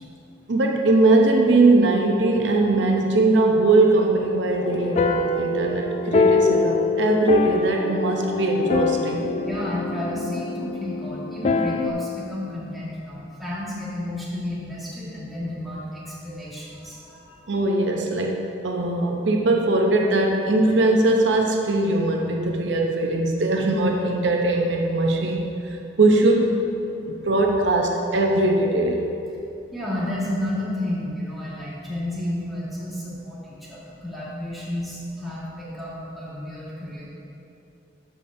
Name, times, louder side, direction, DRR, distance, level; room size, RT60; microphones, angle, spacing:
voice 1, 0.5-9.3 17.5-26.6 27.0-29.0, right 2 dB, 75° right, 1 dB, 0.7 m, -20 dB
sound 1, 4.5-11.9, left 3 dB, 35° left, 0.3 m, -25 dB
voice 2, 9.3-17.5 29.7-37.1, left 1 dB, ahead, -9 dB, 1.7 m, -31 dB
13.5 x 5.0 x 2.6 m, 2.8 s
head